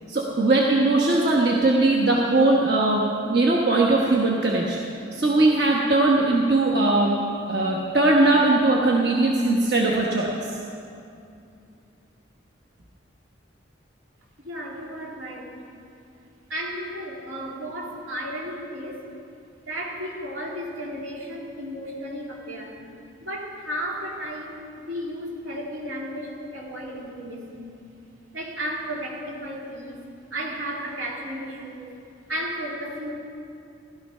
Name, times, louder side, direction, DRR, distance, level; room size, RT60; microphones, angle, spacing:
voice 1, 0.1-4.8 5.1-7.2 7.5-10.3, right 2 dB, 55° right, -2 dB, 1.2 m, -20 dB
voice 2, 14.4-15.5 16.5-19.0 19.7-22.8 23.2-24.6 24.9-27.7 28.3-30.0 30.3-31.9 32.3-33.1, equal, 85° right, -2 dB, 2.8 m, -33 dB
15.5 x 12.0 x 5.6 m, 2.5 s
head